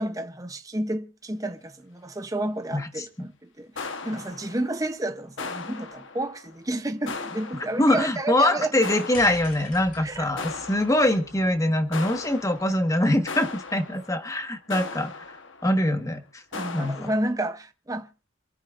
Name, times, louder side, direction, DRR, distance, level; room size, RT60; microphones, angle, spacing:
voice 1, 0.0-8.7 10.0-10.2 16.5-18.1, right 1 dB, 15° right, 0.7 m, -31 dB
voice 2, 2.7-3.1 7.8-15.2 15.6-16.4 16.7-17.1, left 1 dB, 15° left, 1.3 m, -23 dB
sound 1, 3.8-5.0 5.4-6.6 7.1-8.2 8.8-10.0 10.4-11.5 11.9-15.9 16.5-17.2, left 4 dB, 65° left, 1.2 m, -38 dB
sound 2, 9.1-13.5, left 2 dB, 45° left, 3.0 m, -45 dB
27.0 x 9.6 x 2.5 m
head